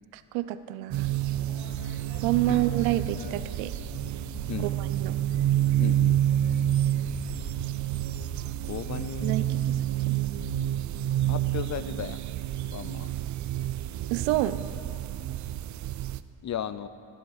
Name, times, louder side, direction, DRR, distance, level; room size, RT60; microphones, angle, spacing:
voice 1, 0.1-1.1 2.2-3.7 4.6-5.1 9.2-10.2 14.1-14.6, right 14 dB, 90° right, 14 dB, 0.7 m, -28 dB
sound 1, 0.9-16.2, right 12 dB, 40° right, 0.4 m, -29 dB
sound 2, 1.2-8.5, left 9 dB, 50° left, 0.9 m, -46 dB
voice 2, 5.8-6.2 8.6-9.3 11.3-12.2 12.7-13.1 16.4-16.9, left 10 dB, 35° left, 14 dB, 0.5 m, -35 dB
14.5 x 11.0 x 4.8 m, 2.7 s
supercardioid pair, 80°, 49 cm